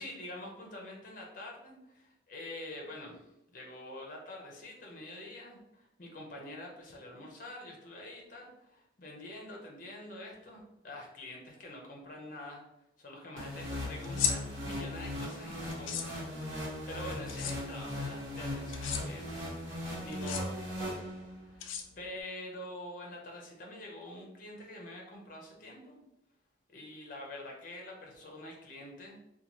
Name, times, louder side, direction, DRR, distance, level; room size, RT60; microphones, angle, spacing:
voice 1, 0.0-12.6 13.0-19.5 20.0-21.1 21.4-26.0 26.7-29.2, left 1 dB, 45° left, 0 dB, 0.6 m, -46 dB
sound 1, 13.4-21.5, left 1 dB, 80° right, 1.0 m, -38 dB
sound 2, 14.0-14.3 15.7-16.1 17.3-17.5 18.7-19.0 20.1-20.4 21.6-22.2, left 8 dB, 80° left, 0.3 m, -33 dB
2.7 x 2.2 x 2.9 m, 0.87 s
head